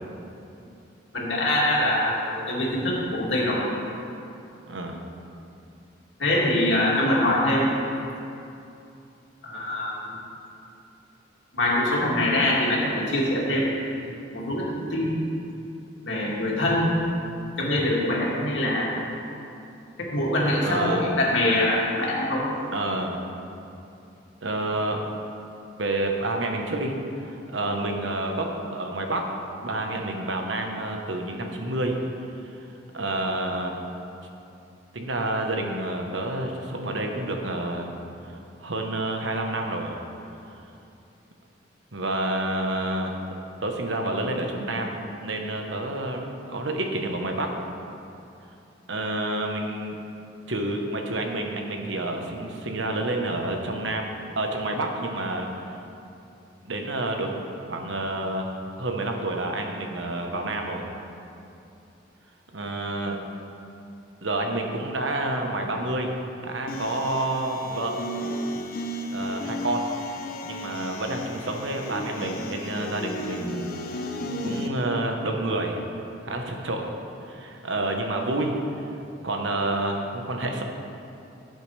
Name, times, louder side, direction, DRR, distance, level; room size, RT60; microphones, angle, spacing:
voice 1, 1.1-3.6 6.2-7.8 9.4-10.2 11.5-13.7 14.3-15.2 16.0-17.0 17.6-19.0 20.0-22.5, left 1 dB, 75° left, -5 dB, 2.6 m, -24 dB
voice 2, 4.7-5.0 20.6-21.1 22.7-23.3 24.4-25.1 25.8-27.0 27.3-29.3 29.6-32.0 32.9-33.8 34.9-37.9 38.2-40.0 40.5-40.6 41.9-43.1 43.6-44.9 45.2-47.6 48.9-50.0 50.5-55.5 56.7-57.3 57.7-58.5 58.8-60.9 62.5-63.2 64.2-66.1 66.4-68.0 69.1-69.9 70.4-73.7 74.4-75.8 76.2-76.9 77.3-78.6 79.2-80.6, right 2 dB, 80° right, 2 dB, 1.2 m, -29 dB
sound 1, 66.7-74.7, left 1 dB, 50° left, 0.7 m, -34 dB
17.0 x 8.0 x 3.4 m, 2.7 s
head